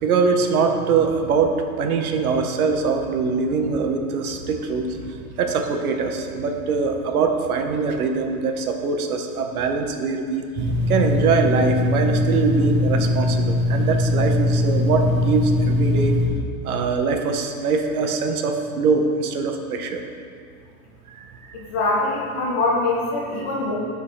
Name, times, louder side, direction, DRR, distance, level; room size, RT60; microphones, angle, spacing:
voice 1, 0.0-10.4 10.9-16.2 16.6-20.0 21.1-21.6, right 4 dB, 85° right, 4 dB, 1.0 m, -23 dB
sound 1, 10.6-16.3, left 1 dB, 25° right, 0.7 m, -21 dB
voice 2, 21.5-23.8, left 2 dB, 15° left, -4 dB, 0.3 m, -23 dB
11.5 x 3.9 x 4.8 m, 2.3 s
supercardioid pair, 170°, 43 cm